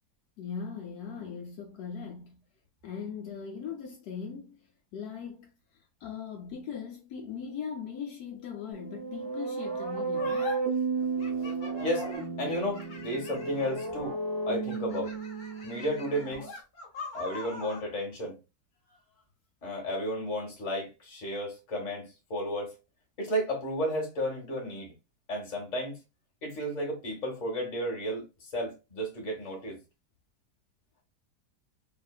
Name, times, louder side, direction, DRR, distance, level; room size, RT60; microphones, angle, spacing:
voice 1, 0.4-2.4 2.8-4.6 4.9-5.5 6.0-10.5 18.9-19.2, left 6 dB, 70° left, 1.1 m, -39 dB
sound 1, 8.7-16.5, right 4 dB, 5° left, 1.3 m, -33 dB
sound 2, 10.1-10.6 11.2-14.0 14.6-17.9, left 3 dB, 50° left, 0.6 m, -43 dB
voice 2, 12.4-14.1 14.5-15.1 15.6-16.5 17.1-18.4 19.6-22.7 23.2-24.9 25.3-26.0 26.4-29.8, equal, 30° left, 0.9 m, -33 dB
2.8 x 2.4 x 2.2 m
omnidirectional pair, 1.8 m